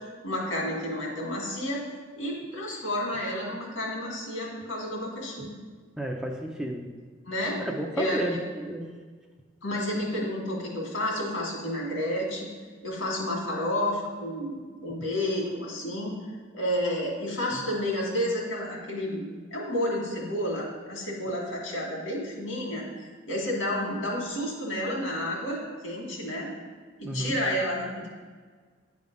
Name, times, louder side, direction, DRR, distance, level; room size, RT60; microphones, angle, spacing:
voice 1, 0.0-1.8 2.2-5.5 7.3-7.6 7.9-8.2 9.6-12.5 12.8-16.2 16.5-22.9 23.3-26.5 27.0-28.1, left 1 dB, 80° left, -1 dB, 1.9 m, -30 dB
voice 2, 6.0-6.9 7.7-8.9 27.0-27.4, right 1 dB, 5° right, 1 dB, 0.4 m, -32 dB
9.5 x 3.6 x 5.2 m, 1.5 s
head